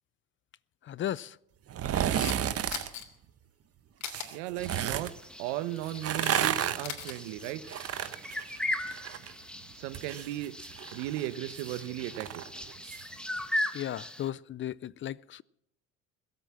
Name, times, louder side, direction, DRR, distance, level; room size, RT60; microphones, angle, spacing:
voice 1, 0.8-1.4 13.7-15.4, left 11 dB, 35° left, 0.5 m, -35 dB
sound 1, 1.7-2.9 4.0-5.1 5.9-9.3 9.6-13.0 13.4-13.5, right 10 dB, 45° right, 1.2 m, -32 dB
Camera, 1.9-2.4 2.7-3.0 4.0-4.3 5.6-6.5 6.7-7.1, left 9 dB, 55° left, 3.0 m, -39 dB
voice 2, 4.3-5.1 5.4-7.7 9.7-12.4, right 14 dB, 80° right, 1.2 m, -36 dB
sound 2, 4.6-14.3, left 1 dB, 5° left, 1.4 m, -39 dB
21.0 x 8.2 x 7.4 m
supercardioid pair, 80°, 34 cm